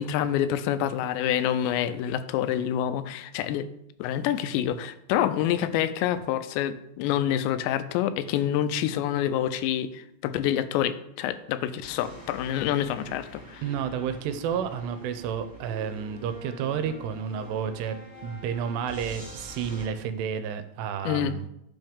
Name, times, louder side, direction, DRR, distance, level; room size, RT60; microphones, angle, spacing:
voice 1, 0.0-3.7 4.0-13.6 21.1-21.4, left 10 dB, 90° left, 12 dB, 2.8 m, -27 dB
sound 1, 11.8-19.9, equal, 10° left, 1.0 m, -45 dB
voice 2, 13.6-18.0 18.2-21.5, right 8 dB, 80° right, 10 dB, 2.6 m, -31 dB
10.5 x 5.6 x 3.6 m, 0.79 s
omnidirectional pair, 5.0 m